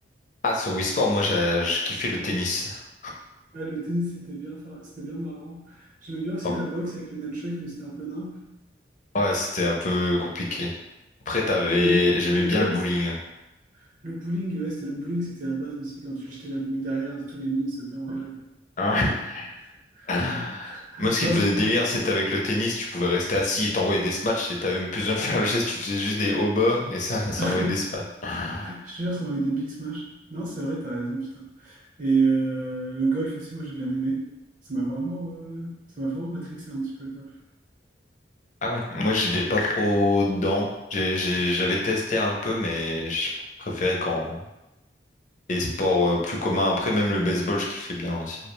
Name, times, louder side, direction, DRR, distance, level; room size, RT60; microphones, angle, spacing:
voice 1, 0.4-2.8 6.4-6.5 9.1-10.7 11.3-13.1 18.8-19.5 20.1-20.7 21.0-28.8 38.6-43.3 43.6-44.4 45.5-48.4, left 2 dB, 40° left, -1 dB, 0.4 m, -25 dB
voice 2, 3.5-8.4 11.8-12.9 14.0-18.4 19.0-19.2 20.0-21.8 27.4-27.9 28.6-30.0 30.3-34.2 34.7-37.3, right 2 dB, 45° right, -5 dB, 0.7 m, -30 dB
2.3 x 2.0 x 3.0 m, 0.96 s
head